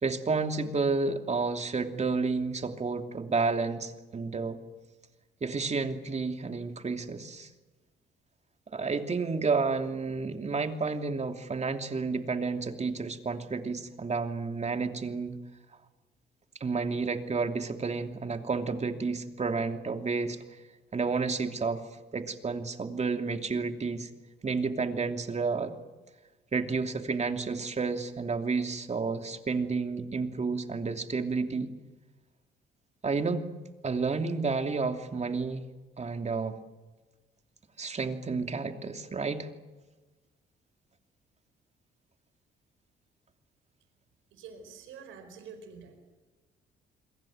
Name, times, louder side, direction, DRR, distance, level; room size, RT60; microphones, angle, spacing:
voice 1, 0.0-4.6 5.4-7.5 8.7-15.4 16.6-20.4 20.9-21.8 22.1-24.1 24.4-25.7 26.5-31.7 33.0-33.5 33.8-35.7 36.0-36.6 37.8-39.5, right 4 dB, 35° right, 6 dB, 2.9 m, -31 dB
voice 2, 44.3-46.0, right 6 dB, 90° right, 8 dB, 4.7 m, -47 dB
28.5 x 22.0 x 7.9 m, 1.2 s
cardioid pair, 90°, 20 cm